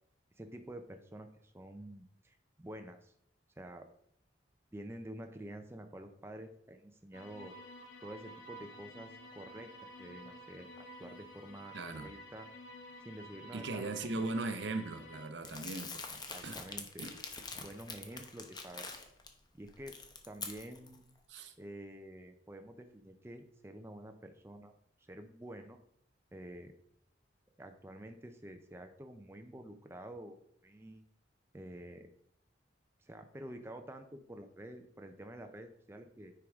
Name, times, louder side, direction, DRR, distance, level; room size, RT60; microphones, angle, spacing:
voice 1, 0.4-3.1 3.6-3.9 4.7-7.5 8.0-11.7 12.0-12.7 13.0-14.3 15.4-15.5 16.3-17.1 17.6-18.9 19.5-20.0 20.3-21.0 21.6-24.7 25.0-25.8 26.3-26.7 27.6-31.0 31.5-32.1 33.0-36.3, right 1 dB, 15° right, 0.5 m, -49 dB
sound 1, 7.1-15.3, equal, 75° left, 1.0 m, -51 dB
voice 2, 11.7-12.1 13.5-16.6 17.0-17.1 21.3-21.5, right 2 dB, 70° right, 0.8 m, -39 dB
Crumpling crinkling, 15.4-19.3 19.7-21.0, left 4 dB, 25° left, 0.8 m, -45 dB
9.7 x 4.7 x 3.5 m
head